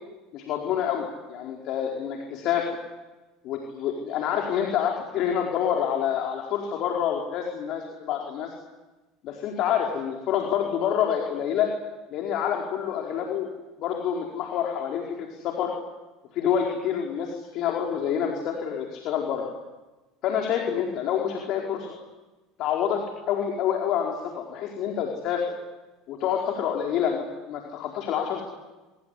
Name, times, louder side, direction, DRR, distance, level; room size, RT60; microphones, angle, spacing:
voice 1, 0.3-2.7 3.4-8.5 9.2-11.7 12.1-13.5 13.8-15.7 16.3-19.5 20.2-21.9 22.6-23.0 23.3-25.4 26.1-28.4, left 9 dB, 55° left, 1 dB, 4.6 m, -27 dB
25.0 x 23.5 x 9.9 m, 1.1 s
hypercardioid pair, 80°, 0 cm